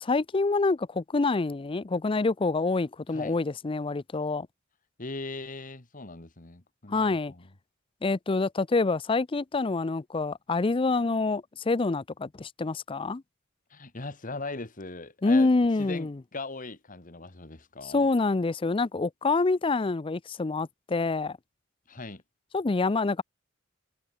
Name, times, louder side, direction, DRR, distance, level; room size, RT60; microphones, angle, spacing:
voice 1, 0.0-4.5 6.9-7.3 8.0-13.2 15.2-16.2 17.8-21.4 22.5-23.2, left 3 dB, 25° left, 0.5 m, -26 dB
voice 2, 5.0-7.5 13.7-15.5 15.8-18.1 21.9-22.2, left 3 dB, 45° left, 1.9 m, -39 dB
head